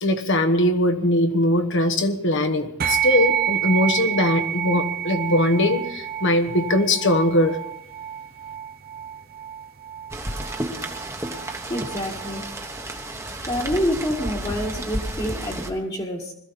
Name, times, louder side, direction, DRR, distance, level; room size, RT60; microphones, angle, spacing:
voice 1, 0.0-7.6, left 1 dB, 60° left, 6 dB, 1.2 m, -21 dB
sound 1, 2.8-12.5, right 10 dB, 45° right, 0.8 m, -29 dB
Rain, 10.1-15.7, right 1 dB, 15° right, 1.2 m, -32 dB
voice 2, 11.7-12.5 13.4-16.3, equal, 25° left, -4 dB, 1.7 m, -27 dB
21.5 x 14.0 x 4.1 m, 0.76 s
head